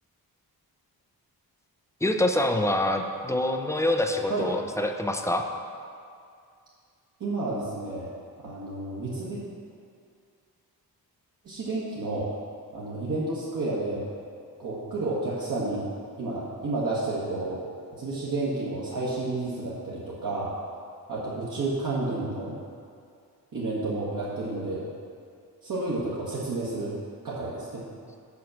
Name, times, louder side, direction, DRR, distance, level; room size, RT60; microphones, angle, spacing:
voice 1, 2.0-5.5, left 1 dB, 10° left, 5 dB, 0.4 m, -25 dB
voice 2, 7.2-8.1 8.4-9.4 11.4-12.3 12.7-14.0 14.6-15.8 16.2-17.6 17.9-20.5 21.1-22.5 23.5-24.8 25.6-26.9 27.2-27.8, right 2 dB, 55° right, -8 dB, 1.4 m, -30 dB
6.2 x 6.1 x 7.2 m, 2.3 s
wide cardioid pair, 150°, 38 cm